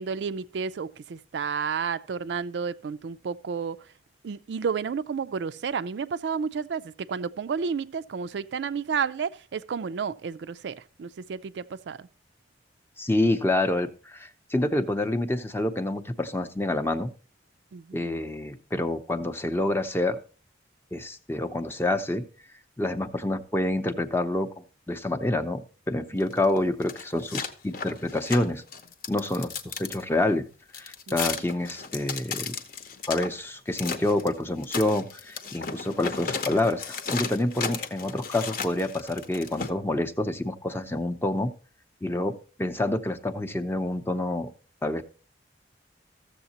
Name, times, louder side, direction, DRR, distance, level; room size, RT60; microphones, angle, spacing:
voice 1, 0.0-3.8 4.2-12.0 17.7-18.1 26.1-26.2 31.1-31.2, right 6 dB, 75° right, 0.4 m, -31 dB
voice 2, 13.0-17.1 17.9-20.2 20.9-22.2 22.8-25.6 25.9-28.6 29.1-30.5 30.8-32.5 33.1-41.5 42.0-42.3 42.6-44.5 44.8-45.0, left 1 dB, 15° left, 0.6 m, -27 dB
sound 1, 26.2-30.0 30.7-33.3 33.7-34.3 34.6-39.7, left 5 dB, 50° left, 0.8 m, -34 dB
14.0 x 7.2 x 2.8 m
head